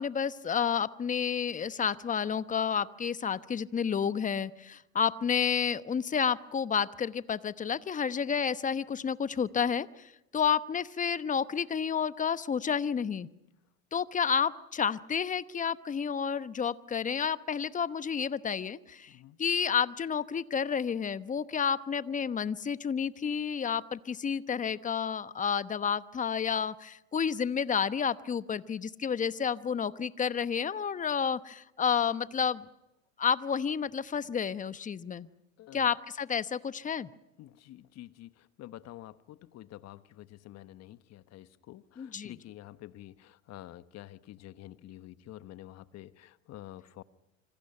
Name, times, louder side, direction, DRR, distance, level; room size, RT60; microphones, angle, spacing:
voice 1, 0.0-13.3 13.9-19.1 19.4-32.7 33.2-35.3 35.7-37.1 42.0-42.3, left 7 dB, 20° left, 14 dB, 1.0 m, -30 dB
voice 2, 19.1-19.4 35.6-35.9 37.4-47.0, left 14 dB, 40° left, 13 dB, 1.3 m, -48 dB
27.0 x 26.0 x 5.6 m, 0.90 s
hypercardioid pair, 95°, 40 cm